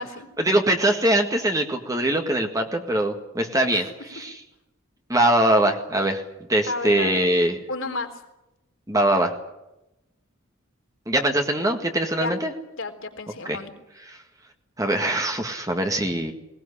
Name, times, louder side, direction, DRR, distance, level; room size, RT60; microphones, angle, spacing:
voice 1, 0.4-4.4 5.1-6.2 6.5-7.6 8.9-9.3 11.1-12.5 13.5-13.6 14.1-14.2 14.8-16.3, right 1 dB, 15° right, 4 dB, 1.8 m, -22 dB
voice 2, 6.7-7.3 7.7-8.1 12.2-12.4 12.8-13.7, left 3 dB, 65° left, 5 dB, 3.5 m, -31 dB
20.5 x 19.5 x 10.0 m, 0.92 s
head